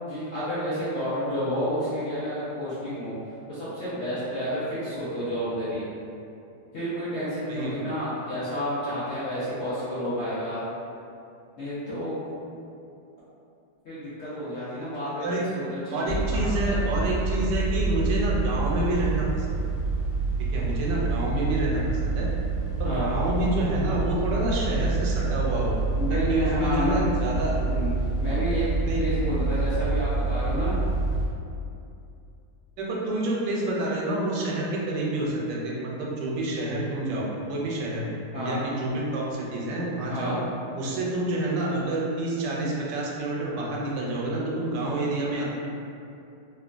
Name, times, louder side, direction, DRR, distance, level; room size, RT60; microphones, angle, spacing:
voice 1, 0.1-3.1 3.5-5.8 6.7-10.6 11.6-12.1 13.8-16.8 22.8-23.1 26.0-27.1 27.6-27.9 28.2-30.8 38.3-38.7 40.1-40.4, equal, 60° left, -13 dB, 0.7 m, -30 dB
voice 2, 7.4-7.9 15.2-15.4 15.9-19.7 20.5-22.3 22.8-25.8 26.1-27.6 28.8-29.0 32.8-40.4 40.8-45.5, right 1 dB, 85° right, -4 dB, 1.2 m, -28 dB
sound 1, 16.1-31.3, right 3 dB, 65° right, 0.7 m, -27 dB
3.2 x 2.1 x 2.4 m, 2.6 s
omnidirectional pair, 1.8 m